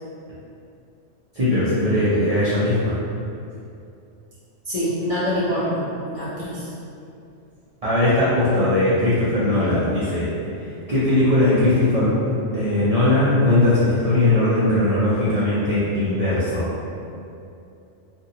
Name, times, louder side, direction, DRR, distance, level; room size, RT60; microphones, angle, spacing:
voice 1, 1.3-2.9 7.8-10.3 10.6-16.7, left 1 dB, 50° right, -12 dB, 0.4 m, -19 dB
voice 2, 4.6-6.7, equal, 65° left, -11 dB, 0.3 m, -25 dB
2.6 x 2.5 x 2.8 m, 2.6 s
omnidirectional pair, 1.4 m